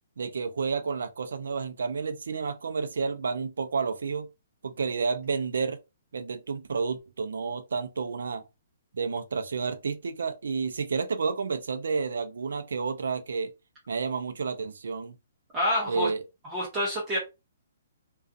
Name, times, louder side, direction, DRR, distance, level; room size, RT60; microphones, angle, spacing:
voice 1, 0.2-4.3 4.6-5.8 6.1-8.4 8.9-13.5 13.9-15.1 15.9-16.2, right 5 dB, 85° right, 0.5 m, -30 dB
voice 2, 15.5-16.1 16.4-17.2, left 1 dB, 15° right, 0.7 m, -27 dB
2.5 x 2.3 x 2.5 m
hypercardioid pair, 170°, 0 cm